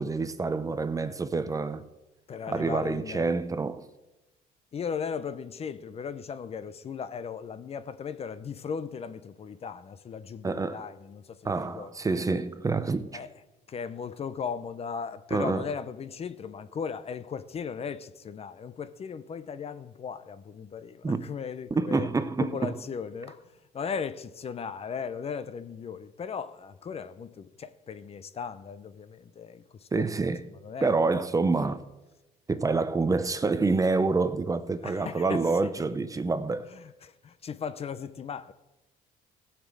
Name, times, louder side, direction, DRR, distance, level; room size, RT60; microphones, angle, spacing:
voice 1, 0.0-1.9 2.5-3.8 10.4-10.8 11.4-13.2 15.3-15.7 21.0-21.3 21.7-22.7 29.9-30.4 30.8-31.8 32.5-36.7, right 3 dB, 20° right, 0.7 m, -27 dB
voice 2, 2.3-3.3 4.7-11.9 13.1-13.3 13.7-22.1 22.4-30.1 30.5-31.3 34.8-35.8 36.7-38.5, left 6 dB, 35° left, 0.7 m, -37 dB
15.5 x 6.0 x 7.5 m
cardioid pair, 110°, 17 cm